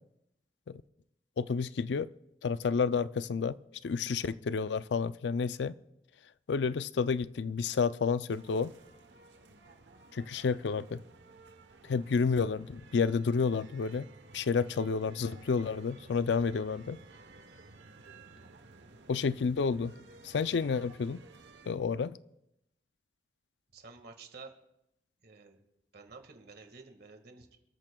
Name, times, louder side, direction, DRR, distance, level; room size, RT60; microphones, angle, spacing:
voice 1, 1.4-2.1 2.4-3.6 3.8-5.7 6.5-8.7 10.1-11.0 11.8-14.1 14.3-17.0 19.1-19.9 20.2-21.2 21.7-22.2, left 5 dB, 70° left, 0.4 m, -30 dB
sound 1, 8.3-21.7, right 3 dB, 85° right, 1.0 m, -55 dB
voice 2, 23.7-24.5 25.2-25.6 25.9-27.6, right 4 dB, 60° right, 1.8 m, -51 dB
27.5 x 13.5 x 2.3 m
head